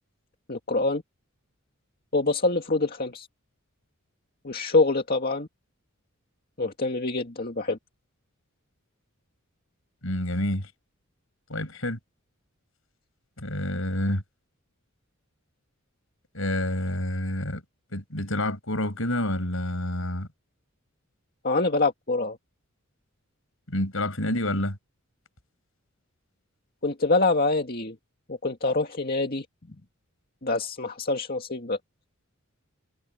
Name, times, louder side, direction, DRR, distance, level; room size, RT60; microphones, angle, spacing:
voice 1, 0.5-1.0 2.1-3.3 4.4-5.5 6.6-7.8 21.4-22.4 26.8-28.0 28.3-29.5 30.4-31.8, left 3 dB, 45° left, 2.1 m, -25 dB
voice 2, 10.0-10.7 11.5-12.0 13.4-14.2 16.3-17.6 17.9-20.3 23.7-24.8, left 1 dB, 70° left, 5.8 m, -28 dB
head